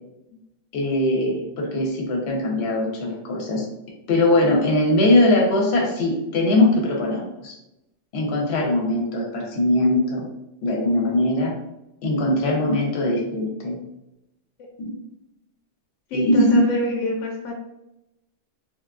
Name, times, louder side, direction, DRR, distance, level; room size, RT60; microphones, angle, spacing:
voice 1, 0.7-3.6 4.1-7.5 8.1-10.2 10.6-11.5 12.0-13.8 14.8-14.9 16.1-16.6, left 1 dB, 65° left, 0 dB, 0.9 m, -21 dB
voice 2, 16.1-17.5, left 1 dB, 85° left, 1 dB, 0.9 m, -26 dB
3.3 x 2.5 x 2.3 m, 0.89 s
omnidirectional pair, 1.3 m